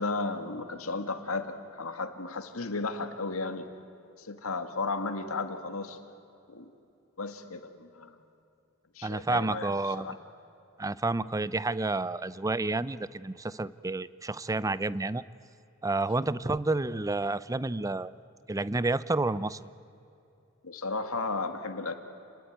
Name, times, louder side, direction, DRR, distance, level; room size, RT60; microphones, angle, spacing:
voice 1, 0.0-3.7 4.2-6.0 6.5-6.7 7.2-8.1 9.0-10.2 20.6-21.9, left 3 dB, 80° left, 7 dB, 2.0 m, -34 dB
voice 2, 9.0-10.2 10.8-15.2 15.8-18.1 18.5-19.7, right 2 dB, 15° right, 17 dB, 0.5 m, -30 dB
29.5 x 20.5 x 9.3 m, 2.8 s
head